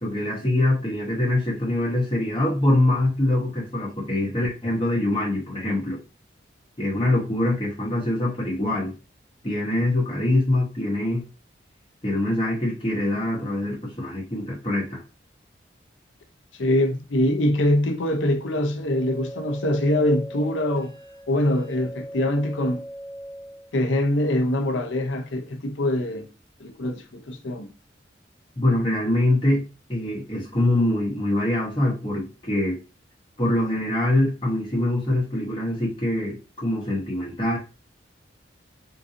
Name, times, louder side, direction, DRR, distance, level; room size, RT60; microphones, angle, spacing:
voice 1, 0.0-6.0 6.8-8.9 9.4-11.2 12.0-15.0 28.6-29.6 29.9-32.8 33.4-37.6, left 1 dB, 25° left, 1.0 m, -24 dB
voice 2, 16.5-20.9 21.3-22.8 23.7-26.3 26.6-27.7, left 1 dB, 75° left, 0.6 m, -23 dB
sound 1, 18.8-23.7, equal, ahead, 1.1 m, -40 dB
3.7 x 2.6 x 2.7 m
head